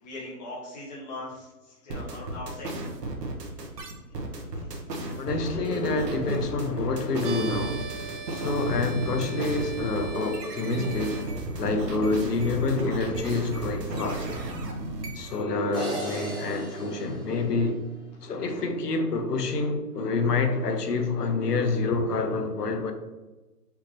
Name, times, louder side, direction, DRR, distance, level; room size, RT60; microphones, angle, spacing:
voice 1, 0.0-2.7 18.2-18.6, left 2 dB, 25° left, 1.2 m, -40 dB
sound 1, 1.9-15.4, right 2 dB, 80° right, 1.2 m, -34 dB
voice 2, 5.2-7.9 8.3-11.3 11.6-14.3 15.1-17.9 18.2-22.9, left 3 dB, 75° left, 0.9 m, -27 dB
sound 2, 7.2-11.3, right 4 dB, 50° right, 0.6 m, -40 dB
sound 3, 15.7-18.1, right 1 dB, 10° right, 1.2 m, -37 dB
5.8 x 2.9 x 2.9 m
hypercardioid pair, 165°, 48 cm